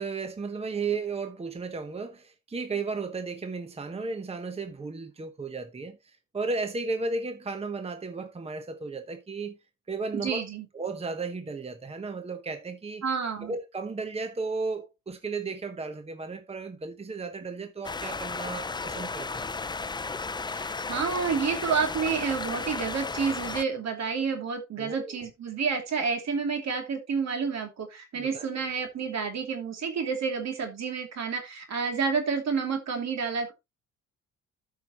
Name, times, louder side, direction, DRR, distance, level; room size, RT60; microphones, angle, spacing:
voice 1, 0.0-9.6 9.9-10.4 10.7-13.0 13.4-19.5 24.8-25.2 28.1-28.5, right 4 dB, 20° right, 1.0 m, -34 dB
voice 2, 10.1-10.7 13.0-13.5 20.5-33.5, right 5 dB, 60° right, 2.8 m, -29 dB
sound 1, 17.8-23.6, left 4 dB, 15° left, 0.5 m, -34 dB
13.5 x 5.7 x 2.9 m
cardioid pair, 90°, 30 cm